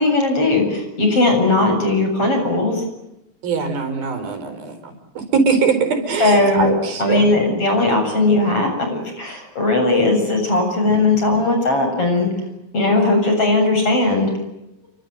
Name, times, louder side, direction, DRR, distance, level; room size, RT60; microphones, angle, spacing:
voice 1, 0.0-2.8 6.2-6.7 7.0-12.3 12.7-14.3, left 2 dB, 40° left, 4 dB, 8.5 m, -18 dB
voice 2, 3.4-7.2, right 5 dB, 80° right, 7 dB, 6.4 m, -21 dB
29.5 x 24.5 x 8.1 m, 0.89 s
omnidirectional pair, 4.2 m